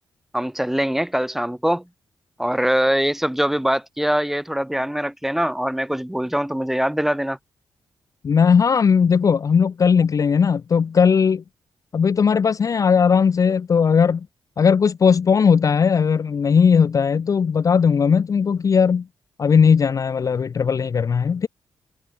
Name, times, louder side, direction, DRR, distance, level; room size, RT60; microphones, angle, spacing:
voice 1, 0.3-1.8 2.4-7.4, equal, 5° right, 1.0 m, -22 dB
voice 2, 8.2-11.4 11.9-14.3 14.6-19.0 19.4-21.5, left 6 dB, 40° left, 0.5 m, -18 dB
wide cardioid pair, 125°, 9 cm